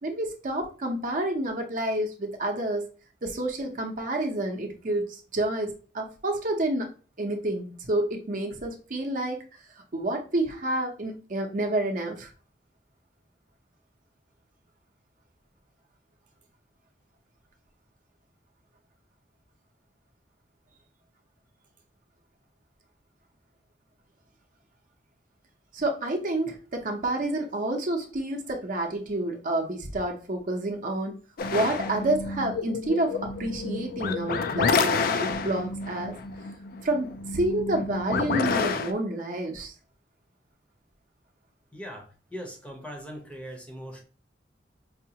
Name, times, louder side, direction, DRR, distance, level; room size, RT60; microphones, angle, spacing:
voice 1, 0.0-2.9 3.2-6.9 7.2-9.4 9.9-12.3 25.7-31.1 31.5-36.2 36.8-39.7, right 1 dB, 50° right, 0.7 m, -29 dB
sound 1, 31.4-38.9, left 4 dB, 55° left, 0.4 m, -29 dB
voice 2, 41.7-44.0, equal, 5° left, 0.7 m, -40 dB
4.8 x 2.3 x 2.8 m
head